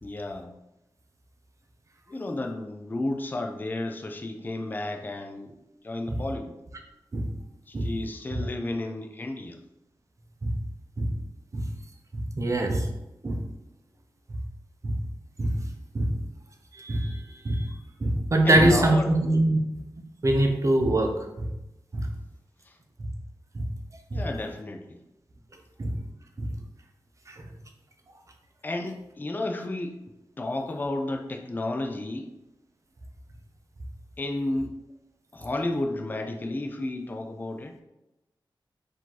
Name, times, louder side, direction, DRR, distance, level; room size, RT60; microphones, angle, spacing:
voice 1, 0.0-0.5 2.1-5.5 5.8-6.5 7.7-9.6 18.5-19.1 22.7-22.8 24.1-25.0 28.6-30.0 30.4-32.3 34.2-34.8 35.3-37.8, left 2 dB, 20° left, 4 dB, 0.4 m, -32 dB
voice 2, 12.1-12.9 13.2-13.4 14.8-15.0 15.4-15.6 15.9-16.1 16.7-19.6 20.2-21.5 21.9-22.1 23.5-23.6 24.1-24.2 25.8-26.0 26.4-26.5 27.3-27.4, right 1 dB, 35° right, 3 dB, 0.7 m, -24 dB
4.9 x 2.7 x 3.8 m, 0.94 s
wide cardioid pair, 135°, 9 cm